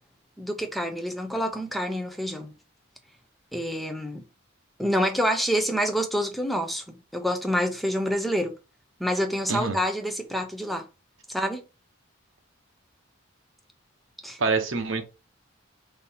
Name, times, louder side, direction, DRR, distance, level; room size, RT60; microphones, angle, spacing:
voice 1, 0.4-2.5 3.5-4.2 4.8-8.5 9.0-10.9 11.3-11.6 14.2-14.4, equal, ahead, 0.5 m, -27 dB
voice 2, 14.4-15.0, right 4 dB, 65° right, 0.8 m, -25 dB
3.9 x 2.8 x 3.5 m
head